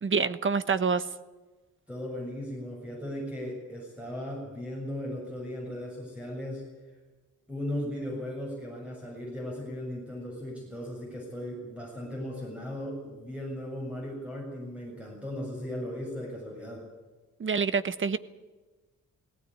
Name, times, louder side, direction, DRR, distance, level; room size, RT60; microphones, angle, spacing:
voice 1, 0.0-1.1 17.4-18.2, right 5 dB, 40° right, 13 dB, 1.1 m, -26 dB
voice 2, 1.9-6.6 7.5-16.8, left 1 dB, 5° right, -3 dB, 7.0 m, -37 dB
19.0 x 17.5 x 9.9 m, 1.2 s
wide cardioid pair, 145°, 31 cm